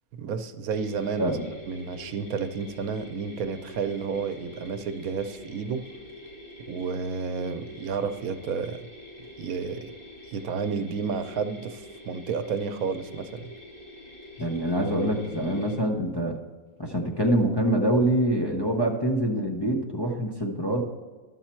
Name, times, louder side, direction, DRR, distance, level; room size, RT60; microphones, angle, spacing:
voice 1, 0.2-1.4 1.6-5.9 6.7-8.9 9.4-9.9 10.3-13.5, right 5 dB, 80° right, 10 dB, 1.1 m, -31 dB
Mechanisms, 0.7-15.7, left 1 dB, 85° left, 3.0 m, -45 dB
voice 2, 14.4-16.4 16.8-20.8, right 1 dB, 20° left, 0 dB, 0.7 m, -25 dB
11.5 x 7.1 x 4.4 m, 1.3 s
omnidirectional pair, 1.5 m